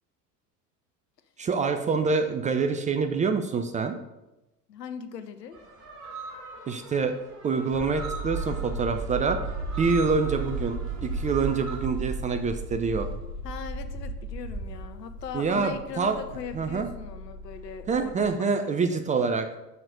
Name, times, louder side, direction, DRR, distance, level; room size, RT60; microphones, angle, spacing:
voice 1, 1.4-4.0 6.7-7.1 7.4-9.4 9.8-13.1 15.3-16.2 16.5-16.9 17.9-19.5, right 5 dB, 15° right, 7 dB, 0.4 m, -26 dB
voice 2, 4.7-5.6 13.4-19.0, left 7 dB, 80° left, 9 dB, 0.8 m, -39 dB
sound 1, 5.5-11.8, right 3 dB, 50° right, 2.9 m, -42 dB
sound 2, 7.7-18.3, right 3 dB, 75° right, 2.9 m, -35 dB
6.7 x 5.7 x 5.2 m, 0.98 s
figure-of-eight pair, 70°, 49 cm